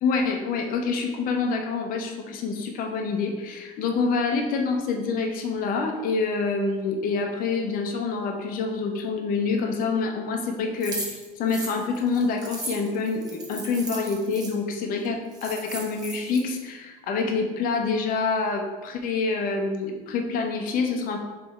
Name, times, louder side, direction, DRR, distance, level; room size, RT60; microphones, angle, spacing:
voice 1, 0.0-21.2, left 4 dB, 50° left, 3 dB, 0.8 m, -27 dB
sound 1, 10.8-14.5 15.0-15.1 15.3-16.4, right 2 dB, 20° right, 0.9 m, -36 dB
3.6 x 3.3 x 4.2 m, 1.3 s
supercardioid pair, 115°, 19 cm